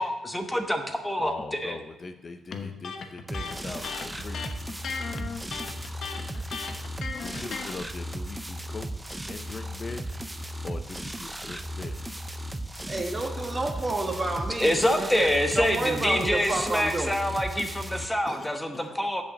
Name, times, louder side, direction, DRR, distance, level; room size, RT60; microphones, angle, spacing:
voice 1, 0.0-1.8 14.6-19.2, equal, 5° left, 5 dB, 1.0 m, -26 dB
voice 2, 1.2-4.5 7.2-8.9 9.3-10.1 10.6-12.1 12.9-13.2 18.3-19.0, left 3 dB, 35° left, 8 dB, 0.5 m, -41 dB
Electric guitar, 2.5-7.8, left 5 dB, 60° left, 0.9 m, -36 dB
sound 1, 3.3-18.1, equal, 10° right, 0.6 m, -36 dB
voice 3, 12.9-14.7 14.9-15.3 15.5-17.1, right 2 dB, 25° right, 3 dB, 1.5 m, -29 dB
7.3 x 5.4 x 7.3 m, 1.0 s
cardioid pair, 90°, 0 cm